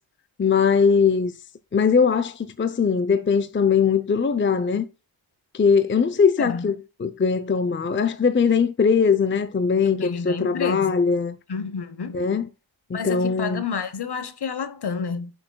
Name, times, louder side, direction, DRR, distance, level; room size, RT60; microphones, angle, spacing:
voice 1, 0.4-1.3 1.7-4.9 5.5-11.4 12.1-12.5 12.9-13.6, left 6 dB, 25° left, 0.6 m, -21 dB
voice 2, 9.8-11.0 11.5-12.2 12.9-15.3, left 6 dB, 55° left, 1.1 m, -30 dB
10.5 x 6.5 x 2.3 m
wide cardioid pair, 90°, 47 cm